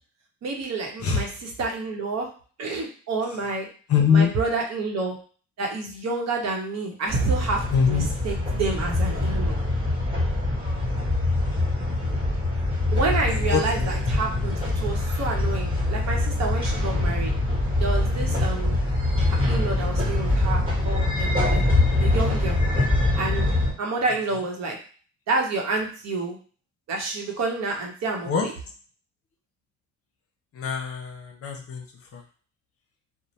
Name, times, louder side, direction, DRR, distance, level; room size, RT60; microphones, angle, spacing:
voice 1, 0.4-2.3 2.6-3.7 4.1-5.1 5.6-9.6 12.9-17.3 17.8-18.8 19.3-21.6 22.0-22.6 23.2-24.8 25.3-26.4 26.9-28.5, right 3 dB, 60° right, 1 dB, 0.8 m, -29 dB
voice 2, 3.9-4.3 7.7-8.1 13.3-13.9 18.1-18.5 28.2-28.5 30.5-31.8 32.1-32.2, left 6 dB, 50° left, 2 dB, 0.7 m, -23 dB
sound 1, 7.1-23.7, left 2 dB, 15° right, 1.4 m, -24 dB
2.6 x 2.0 x 3.1 m, 0.40 s
cardioid pair, 90°, 30 cm